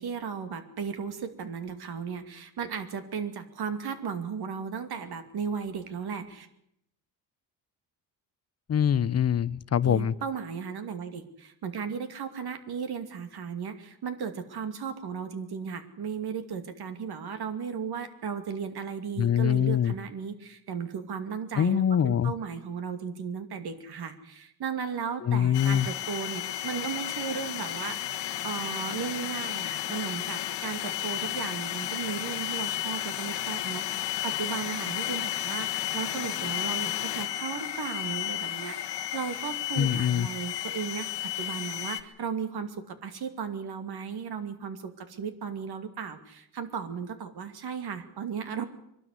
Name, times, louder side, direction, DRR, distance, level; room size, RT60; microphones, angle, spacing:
voice 1, 0.0-6.5 9.8-48.6, right 6 dB, 65° right, 8 dB, 2.6 m, -36 dB
voice 2, 8.7-10.1 19.2-19.9 21.6-22.3 25.2-25.9 39.8-40.3, left 9 dB, 35° left, 18 dB, 0.7 m, -24 dB
sound 1, 25.5-42.0, left 13 dB, 75° left, 1.5 m, -33 dB
23.0 x 12.5 x 9.7 m, 0.76 s
cardioid pair, 100°, 42 cm